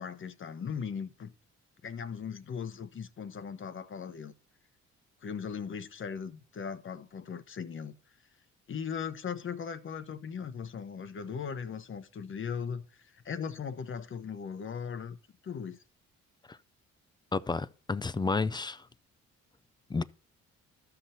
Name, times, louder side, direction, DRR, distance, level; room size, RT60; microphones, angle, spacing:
voice 1, 0.0-1.3 1.8-4.3 5.2-7.9 8.7-15.2 15.4-15.8, left 6 dB, 40° left, 0.9 m, -38 dB
voice 2, 17.3-18.8 19.9-20.0, left 4 dB, 15° left, 0.3 m, -31 dB
12.5 x 5.9 x 2.7 m
cardioid pair, 90°, 30 cm